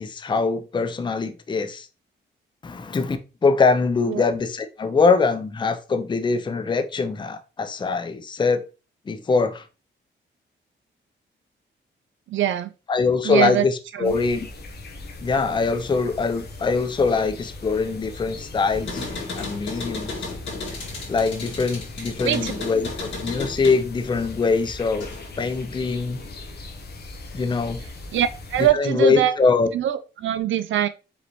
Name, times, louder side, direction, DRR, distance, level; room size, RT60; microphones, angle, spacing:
voice 1, 0.0-1.9 2.6-3.2 3.4-8.6 9.1-9.6 12.9-14.5 15.2-19.1 19.4-20.3 21.1-25.1 25.4-26.2 27.3-27.8 28.7-29.7, left 4 dB, 25° left, 0.5 m, -23 dB
voice 2, 12.3-12.7 13.2-13.7 13.9-14.1 22.2-22.7 28.1-29.4 29.7-30.9, right 11 dB, 75° right, 0.5 m, -23 dB
sound 1, 14.0-28.7, left 2 dB, 55° left, 1.0 m, -39 dB
sound 2, 18.7-25.4 25.8-26.6, left 3 dB, 70° left, 2.0 m, -35 dB
5.0 x 3.2 x 3.0 m
cardioid pair, 100°, 20 cm